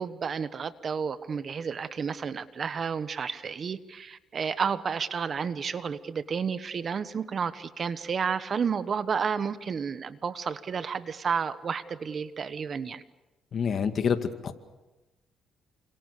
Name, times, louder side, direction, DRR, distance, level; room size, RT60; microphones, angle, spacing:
voice 1, 0.0-13.0, right 6 dB, 50° right, 13 dB, 1.2 m, -31 dB
voice 2, 13.5-14.2 14.4-14.5, left 7 dB, 55° left, 8 dB, 2.2 m, -26 dB
29.0 x 26.5 x 6.8 m, 1.1 s
cardioid pair, 90°, 0 cm